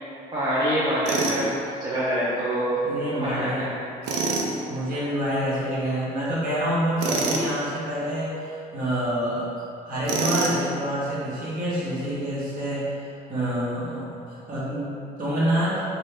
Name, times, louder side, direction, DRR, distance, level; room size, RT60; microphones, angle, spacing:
voice 1, 0.3-2.8 3.1-3.8, right 1 dB, 25° right, -9 dB, 0.7 m, -25 dB
Tools, 1.1-1.4 4.0-4.5 7.0-7.5 10.1-10.7, right 3 dB, 85° right, 0.5 m, -25 dB
voice 2, 2.8-3.7 4.7-9.5 9.8-12.9 13.3-14.9 15.2-15.8, equal, 55° right, -9 dB, 1.4 m, -27 dB
3.9 x 2.7 x 3.3 m, 2.6 s
cardioid pair, 110°, 17 cm